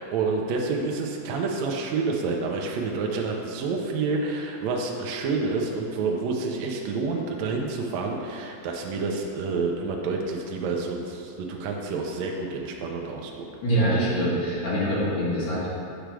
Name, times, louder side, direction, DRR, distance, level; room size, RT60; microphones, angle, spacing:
voice 1, 0.0-13.5, right 4 dB, 80° right, 0 dB, 1.5 m, -28 dB
voice 2, 13.6-15.7, right 1 dB, 55° left, -10 dB, 2.9 m, -24 dB
9.3 x 3.4 x 6.1 m, 2.5 s
omnidirectional pair, 4.3 m